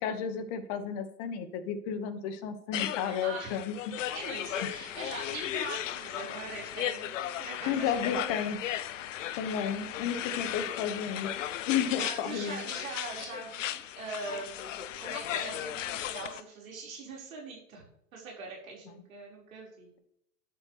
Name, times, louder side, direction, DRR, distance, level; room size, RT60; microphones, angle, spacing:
voice 1, 0.0-3.7 7.6-8.6 9.4-11.3 11.7-12.7, left 7 dB, 40° left, 9 dB, 1.8 m, -32 dB
sound 1, 2.7-16.4, left 12 dB, 55° left, 0.9 m, -36 dB
voice 2, 3.0-3.6 4.1-8.5 12.0-17.8 18.1-19.9, right 3 dB, 65° right, -2 dB, 5.3 m, -42 dB
12.0 x 11.0 x 3.4 m, 0.74 s
figure-of-eight pair, 95°, 44 cm